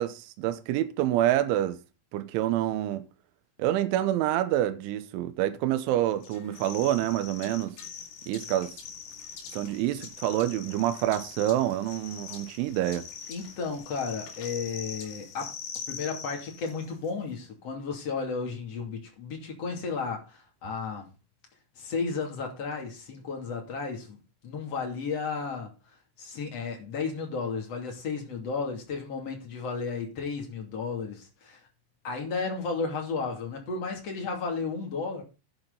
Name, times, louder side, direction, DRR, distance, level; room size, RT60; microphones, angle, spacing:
voice 1, 0.0-1.8 2.1-3.1 3.6-7.8 8.3-8.7 9.5-13.0, right 13 dB, 80° right, 3.1 m, -27 dB
sound 1, 6.2-17.1, left 7 dB, 55° left, 4.2 m, -43 dB
voice 2, 13.3-15.5 15.9-21.1 21.8-24.2 24.4-25.7 26.2-31.6 32.0-35.2, left 4 dB, 40° left, 2.8 m, -33 dB
11.0 x 9.2 x 4.0 m
omnidirectional pair, 6.0 m